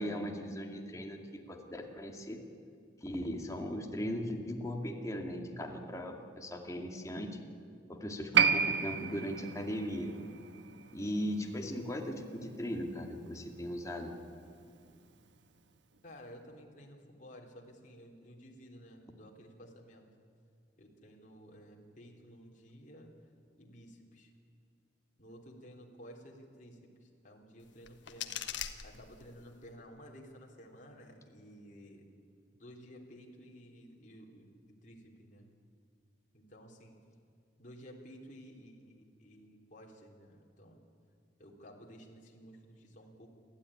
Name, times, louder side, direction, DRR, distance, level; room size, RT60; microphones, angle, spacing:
voice 1, 0.0-2.4 3.0-7.4 7.9-10.1 10.9-14.1, equal, 15° left, 2 dB, 2.3 m, -38 dB
Piano, 8.3-15.3 15.6-15.7, right 6 dB, 70° right, 1.2 m, -34 dB
voice 2, 16.0-20.1 20.8-23.1 23.6-24.3 25.2-28.4 28.8-32.1 32.6-34.5 34.8-35.5 36.3-36.9 37.6-40.8 41.4-43.3, equal, 40° left, -1 dB, 3.6 m, -53 dB
sound 1, 27.6-29.6, left 9 dB, 70° left, 1.4 m, -43 dB
29.0 x 13.0 x 10.0 m, 2.4 s
head